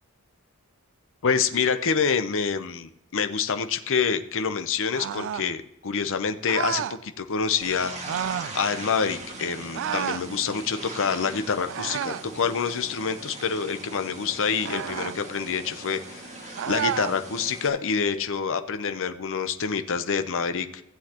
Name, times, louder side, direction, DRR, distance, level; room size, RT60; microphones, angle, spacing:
voice 1, 1.2-7.9 8.5-20.7, left 6 dB, 60° left, 9 dB, 0.7 m, -27 dB
sound 1, 4.9-5.5 6.5-7.0 8.0-8.6 9.7-10.3 11.7-12.3 14.6-15.2 16.6-17.2, right 9 dB, 55° right, 0.3 m, -30 dB
sound 2, 7.6-17.7, right 2 dB, 30° right, 1.8 m, -40 dB
15.5 x 8.1 x 2.9 m, 0.85 s
head